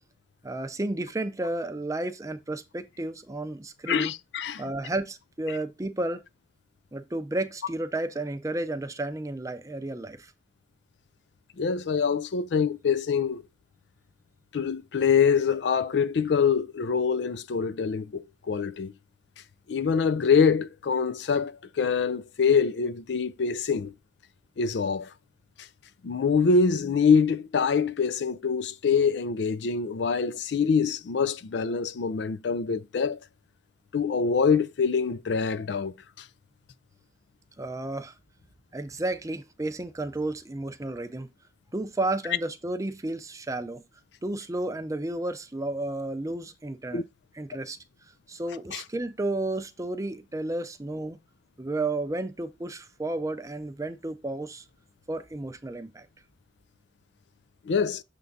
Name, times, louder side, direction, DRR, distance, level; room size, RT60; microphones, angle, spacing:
voice 1, 0.4-4.1 4.6-6.2 6.9-10.3 37.6-38.1 38.7-41.3 41.7-43.8 44.2-47.0 47.3-47.8 48.3-51.2 51.6-54.6 55.1-56.1, right 2 dB, 20° right, 0.5 m, -32 dB
voice 2, 3.9-4.6 11.6-13.4 14.5-18.9 19.7-23.9 24.6-25.1 26.0-33.2 33.9-35.9 46.9-47.0 48.7-48.8 57.7-58.0, left 5 dB, 70° left, 0.4 m, -25 dB
6.7 x 3.6 x 3.9 m
head